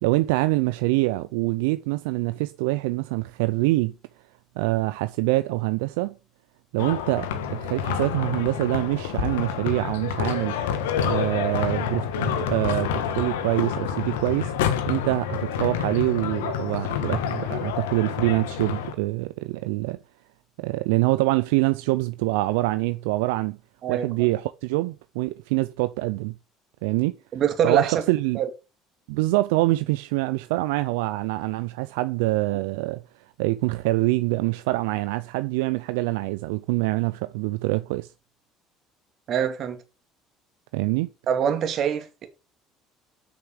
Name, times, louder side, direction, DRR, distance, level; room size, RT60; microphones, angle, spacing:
voice 1, 0.0-3.9 4.6-6.1 6.7-10.6 11.0-14.5 14.9-20.0 20.6-23.6 23.9-26.3 26.8-27.2 27.6-28.4 29.1-33.0 33.4-38.1 40.7-41.1, right 20 dB, 80° right, 0.5 m, -25 dB
sound 1, 6.8-18.9, left 8 dB, 85° left, 1.5 m, -28 dB
voice 2, 23.8-24.3 27.3-28.0 28.3-28.5 39.3-39.8 41.3-42.3, right 8 dB, 55° right, 2.5 m, -24 dB
8.1 x 6.6 x 6.6 m
hypercardioid pair, 75°, 0 cm